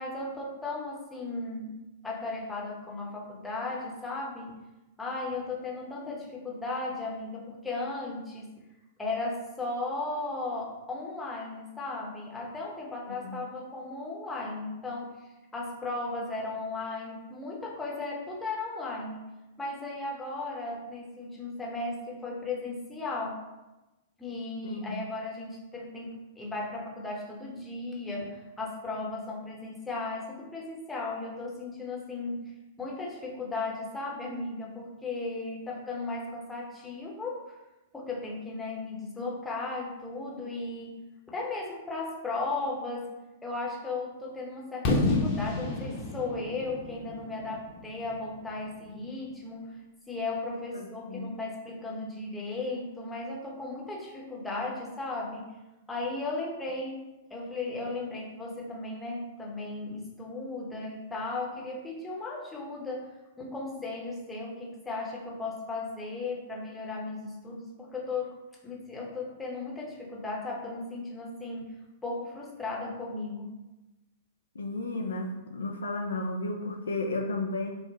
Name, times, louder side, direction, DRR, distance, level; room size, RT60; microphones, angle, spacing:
voice 1, 0.0-1.8 2.0-4.5 5.0-8.5 9.0-15.2 15.5-19.3 19.6-23.4 24.2-37.5 37.9-49.7 50.1-55.5 55.9-68.4 68.6-71.7 72.0-73.6, left 3 dB, 10° left, -4 dB, 0.8 m, -36 dB
voice 2, 24.6-25.0 50.7-51.3 74.5-77.7, left 2 dB, 75° left, 2 dB, 0.4 m, -33 dB
Fireworks, 44.8-48.7, left 2 dB, 40° left, 0.8 m, -30 dB
3.1 x 2.1 x 3.5 m, 1.0 s
figure-of-eight pair, 110°, 0 cm